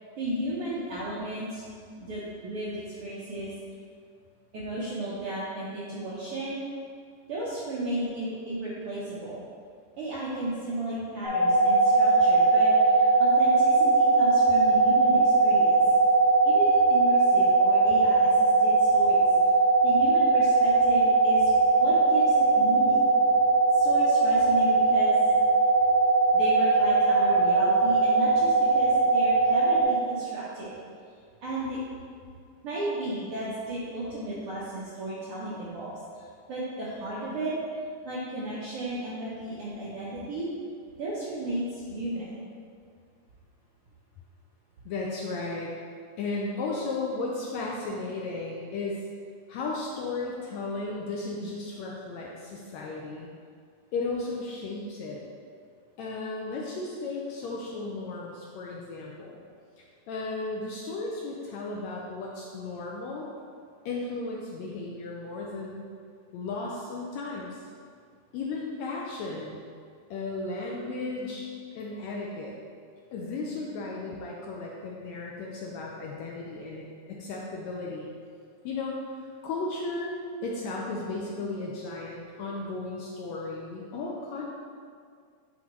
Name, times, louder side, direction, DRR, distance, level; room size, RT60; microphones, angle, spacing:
voice 1, 0.2-1.6 1.9-3.5 4.5-6.6 7.3-9.4 10.0-15.8 16.4-19.2 19.8-23.0 23.7-25.1 26.3-30.8 31.4-31.8 32.6-36.2 36.5-37.6 38.0-40.5 41.0-42.4, right 1 dB, 70° right, -8 dB, 1.3 m, -34 dB
sound 1, 11.2-29.8, right 3 dB, 45° left, 1.7 m, -20 dB
voice 2, 44.8-45.7 46.2-49.0 49.5-53.3 53.9-55.2 56.0-59.4 60.1-63.3 63.8-65.9 66.3-67.6 68.3-69.6 70.1-71.5 71.7-72.5 73.1-78.1 78.6-78.9 79.4-84.5, left 3 dB, 75° left, -3 dB, 1.7 m, -35 dB
9.7 x 3.6 x 3.1 m, 2.1 s
omnidirectional pair, 3.6 m